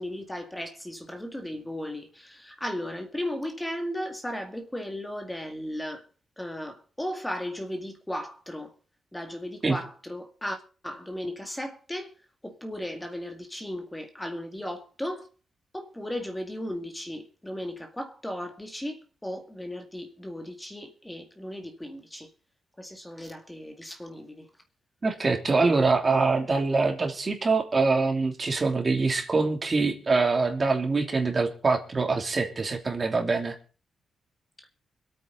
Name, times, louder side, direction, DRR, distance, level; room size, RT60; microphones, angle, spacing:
voice 1, 0.0-6.1 6.4-8.7 9.1-12.1 12.4-15.3 15.7-22.3 22.8-24.5 26.4-26.5 34.6-34.7, left 1 dB, 10° left, 2.1 m, -36 dB
voice 2, 25.0-33.6, right 3 dB, 30° right, 2.9 m, -24 dB
25.0 x 8.9 x 4.0 m
cardioid pair, 110°, 0 cm